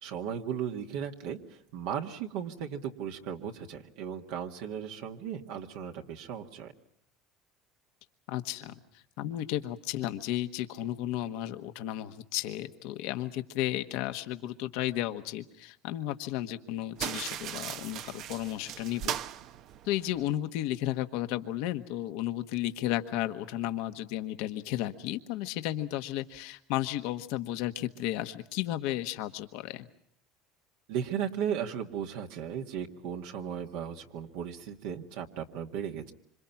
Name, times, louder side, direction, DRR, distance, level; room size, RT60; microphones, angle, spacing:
voice 1, 0.0-6.7 30.9-36.1, right 8 dB, 75° right, 2 dB, 2.1 m, -36 dB
voice 2, 8.3-8.7 9.2-19.2 19.8-29.9, left 13 dB, 70° left, 9 dB, 1.4 m, -33 dB
sound 1, 17.0-20.3, right 11 dB, 60° right, 0.9 m, -38 dB
26.5 x 26.0 x 6.0 m, 0.68 s
hypercardioid pair, 80°, 0 cm